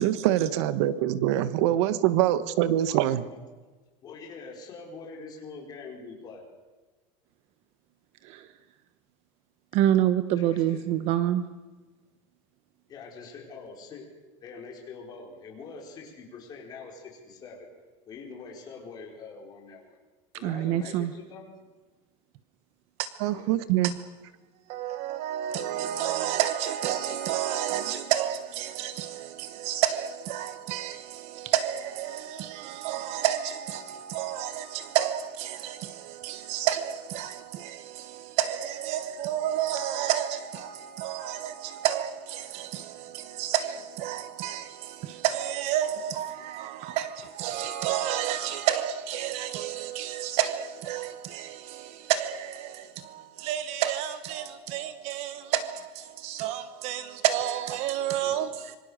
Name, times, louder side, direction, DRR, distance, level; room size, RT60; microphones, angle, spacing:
voice 1, 0.0-3.2 23.2-23.9, right 13 dB, 60° right, 1.3 m, -24 dB
voice 2, 2.9-3.4 4.0-6.4 10.4-10.9 12.9-14.1 14.4-17.7 18.0-20.0 20.3-21.6 23.3-23.5 58.2-58.4, left 4 dB, 25° left, 5.1 m, -44 dB
voice 3, 9.7-11.4 20.4-21.1 23.0-23.1 23.8-23.9 24.7-58.8, right 11 dB, 40° right, 1.0 m, -30 dB
26.5 x 24.5 x 6.6 m
supercardioid pair, 175°, 16 cm